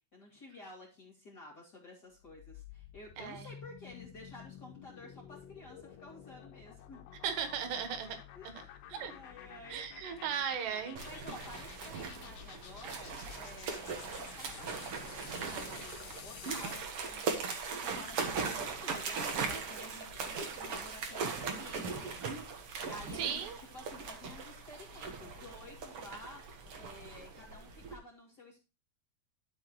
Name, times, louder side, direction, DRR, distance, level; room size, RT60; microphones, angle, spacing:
voice 1, 0.1-7.0 8.0-8.5 8.9-9.8 11.0-22.2 22.8-26.4 26.7-28.6, left 2 dB, 30° left, -3 dB, 2.4 m, -52 dB
sound 1, 2.2-16.9, left 10 dB, 85° left, 3.0 m, -51 dB
voice 2, 3.2-3.5 7.2-8.2 8.9-9.1 9.7-11.0 23.1-23.6, right 8 dB, 85° right, 7 dB, 3.5 m, -36 dB
sound 2, 11.0-28.0, right 5 dB, 60° right, 1.5 m, -39 dB
12.5 x 7.3 x 3.0 m, 0.29 s
omnidirectional pair, 4.7 m